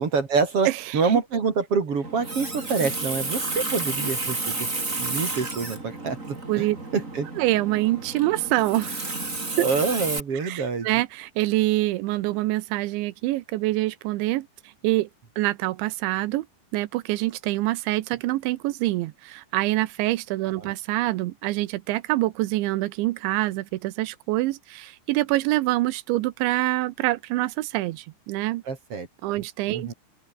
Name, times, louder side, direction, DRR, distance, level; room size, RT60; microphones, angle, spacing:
voice 1, 0.0-0.7 0.9-4.6 5.0-6.6 6.9-7.3 9.6-10.9 20.6-20.7 28.7-29.1 29.7-29.9, right 5 dB, 35° right, 2.9 m, -26 dB
voice 2, 0.7-1.2 6.5-6.8 7.4-9.1 9.6-9.7 10.4-14.5 14.8-15.1 15.4-16.5 16.7-28.6 29.2-29.9, right 18 dB, 80° right, 3.1 m, -25 dB
Water tap faucet, 2.0-10.2, right 3 dB, 15° right, 4.2 m, -31 dB
open air
omnidirectional pair, 5.5 m